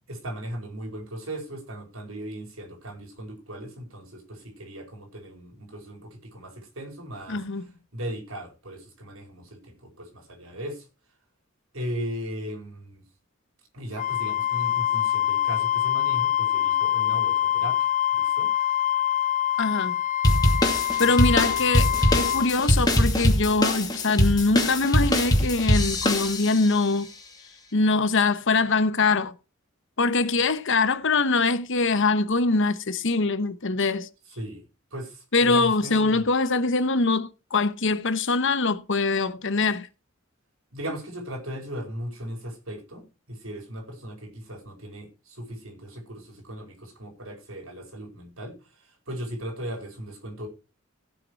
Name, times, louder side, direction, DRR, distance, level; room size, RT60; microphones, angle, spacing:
voice 1, 0.1-7.4 7.9-10.8 11.7-13.0 13.7-17.9 18.2-18.5 21.1-21.3 21.7-22.0 34.4-34.6 34.9-36.3 40.7-48.5 48.8-50.5, equal, 75° right, 4.8 m, -37 dB
voice 2, 7.3-7.7 19.6-20.0 21.0-27.1 27.7-29.3 30.0-34.1 35.3-39.9, left 3 dB, 65° left, 1.2 m, -23 dB
Wind instrument woodwind instrument, 14.0-22.5, left 11 dB, 40° left, 0.5 m, -25 dB
sound 1, 20.2-26.7, left 1 dB, 20° left, 2.6 m, -22 dB
16.0 x 7.0 x 4.6 m
head